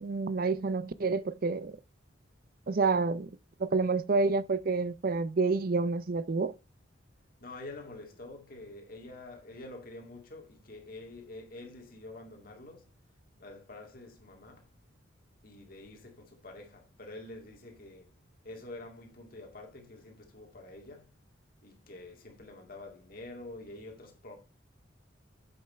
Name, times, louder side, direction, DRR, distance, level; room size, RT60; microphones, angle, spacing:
voice 1, 0.0-1.8 2.7-3.3 3.6-6.5, right 4 dB, 50° right, 0.5 m, -28 dB
voice 2, 7.4-12.9 13.4-14.7 15.4-18.1 18.4-21.1 21.6-24.4, left 2 dB, 50° left, 2.3 m, -47 dB
7.9 x 5.7 x 4.4 m
head